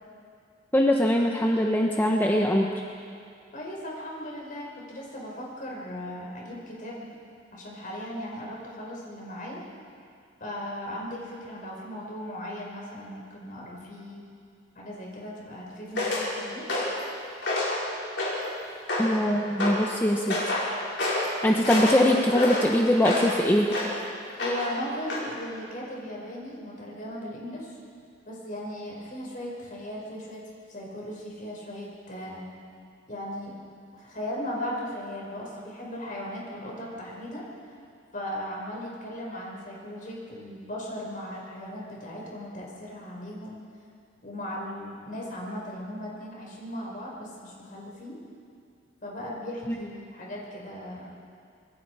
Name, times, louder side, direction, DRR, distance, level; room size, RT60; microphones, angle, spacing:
voice 1, 0.7-2.7 19.0-20.4 21.4-23.7 49.7-49.8, left 1 dB, 10° left, 0 dB, 1.0 m, -22 dB
voice 2, 3.5-7.2 7.5-9.6 10.4-14.3 14.7-16.7 24.4-27.8 28.3-30.4 30.7-32.5 33.1-33.6 33.9-37.7 38.1-43.6 44.2-48.2 49.0-51.2, left 1 dB, 45° left, -3 dB, 5.7 m, -37 dB
sound 1, 15.9-16.3 16.7-17.0 17.4-17.8 18.2-18.5 18.9-19.2 19.6-19.8 20.3-20.7 21.0-21.3 21.6-23.3 23.7-24.0 24.4-24.8 25.1-25.3, left 2 dB, 70° left, 5.7 m, -28 dB
27.0 x 22.0 x 4.9 m, 2.3 s
head